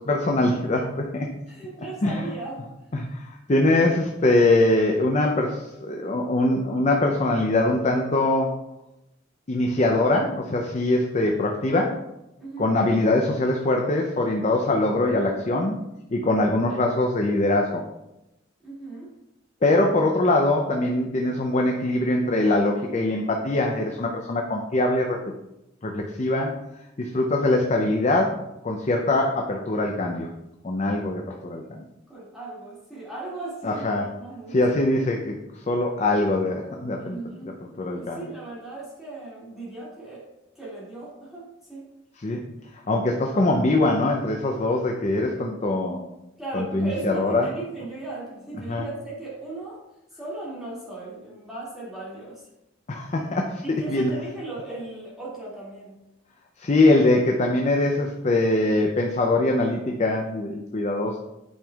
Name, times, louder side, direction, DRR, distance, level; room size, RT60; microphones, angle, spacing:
voice 1, 0.1-1.3 2.0-2.2 2.9-8.5 9.5-12.0 12.6-15.8 16.1-17.8 19.6-25.2 25.8-26.5 27.0-30.3 30.6-31.8 33.6-34.1 34.5-35.3 35.7-37.2 37.6-38.2 42.2-42.4 42.9-46.0 46.5-47.5 48.6-48.8 52.9-53.6 53.9-54.1 56.6-61.2, left 2 dB, 35° left, 1 dB, 0.5 m, -22 dB
voice 2, 1.5-2.6 12.4-12.7 18.6-19.1 32.1-33.8 34.2-34.5 37.0-37.5 37.9-40.3 40.6-41.8 46.4-49.8 50.2-52.4 53.6-56.0, right 2 dB, ahead, -9 dB, 2.2 m, -37 dB
8.8 x 5.2 x 2.3 m, 0.91 s
head